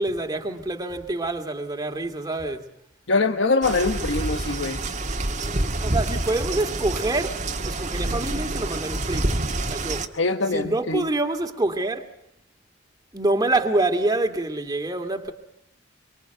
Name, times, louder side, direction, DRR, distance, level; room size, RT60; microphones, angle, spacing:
voice 1, 0.0-2.7 5.4-9.4 9.7-10.1 10.5-12.1 13.1-15.3, right 2 dB, 20° right, 2.3 m, -26 dB
voice 2, 3.1-4.8 10.1-11.0, left 3 dB, 65° left, 1.2 m, -23 dB
sound 1, 3.6-10.1, right 2 dB, 35° right, 1.7 m, -27 dB
25.0 x 24.5 x 8.1 m
head